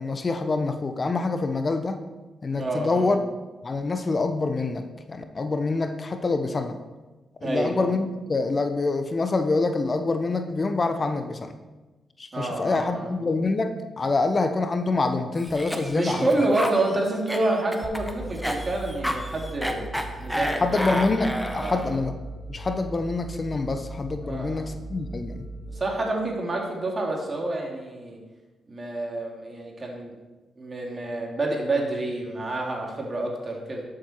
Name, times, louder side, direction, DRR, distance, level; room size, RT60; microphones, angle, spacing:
voice 1, 0.0-2.0 2.4-3.3 3.6-6.8 7.4-11.5 12.2-16.3 20.6-22.1 22.5-25.5, left 3 dB, 40° left, 8 dB, 1.0 m, -26 dB
voice 2, 2.6-3.1 7.4-7.7 12.3-13.1 15.9-19.9 20.2-20.9 21.6-21.9 24.2-24.6 25.7-28.2 28.7-30.1 30.6-33.8, right 2 dB, 40° right, -1 dB, 3.3 m, -28 dB
Cough, 15.4-22.0, equal, ahead, 1.4 m, -31 dB
sound 1, 17.8-26.8, right 2 dB, 15° right, 3.3 m, -39 dB
12.0 x 7.7 x 4.7 m, 1.2 s
supercardioid pair, 45°, 0 cm